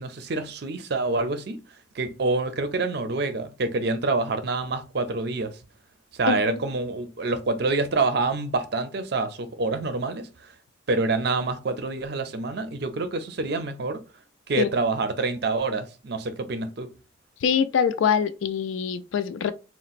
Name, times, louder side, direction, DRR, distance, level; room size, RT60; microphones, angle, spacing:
voice 1, 0.0-1.6 1.9-5.5 6.1-10.5 10.9-14.0 14.5-16.9, right 3 dB, 55° right, 0.5 m, -27 dB
voice 2, 6.3-6.6 14.6-14.7 17.4-19.5, left 7 dB, 75° left, 0.3 m, -24 dB
4.0 x 2.1 x 2.4 m
head